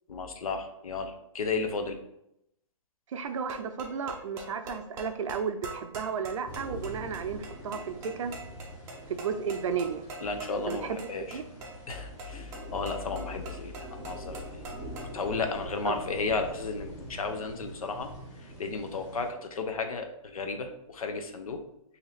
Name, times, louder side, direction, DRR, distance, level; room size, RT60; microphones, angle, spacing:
voice 1, 0.1-2.0 10.2-11.4 11.9-14.4 15.1-18.1 18.4-21.6, left 4 dB, 85° left, 6 dB, 0.6 m, -33 dB
voice 2, 3.1-8.3 9.1-10.0 10.6-11.4 15.8-16.0, right 6 dB, 65° right, 9 dB, 0.4 m, -33 dB
sound 1, 3.2-15.2, right 2 dB, 15° right, 0.5 m, -44 dB
sound 2, 6.5-19.3, equal, 20° left, 1.0 m, -45 dB
3.1 x 2.8 x 4.0 m, 0.79 s
hypercardioid pair, 155°, 18 cm